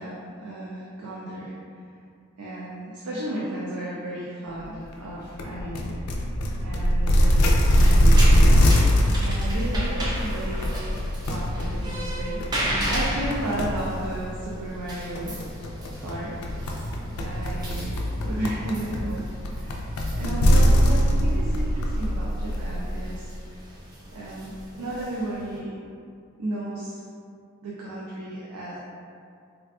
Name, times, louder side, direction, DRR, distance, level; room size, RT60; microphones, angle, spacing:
voice 1, 0.0-1.5 2.4-6.0 6.6-8.5 9.2-10.7 11.2-15.5 16.0-16.4 17.2-19.9 20.2-23.3 24.1-25.8 26.4-27.0 27.6-28.8, right 1 dB, 85° right, -6 dB, 0.4 m, -34 dB
sound 1, 5.4-22.8, equal, 85° left, 0.4 m, -22 dB
sound 2, 7.4-25.6, equal, 20° right, 0.3 m, -35 dB
3.5 x 2.3 x 2.3 m, 2.4 s
head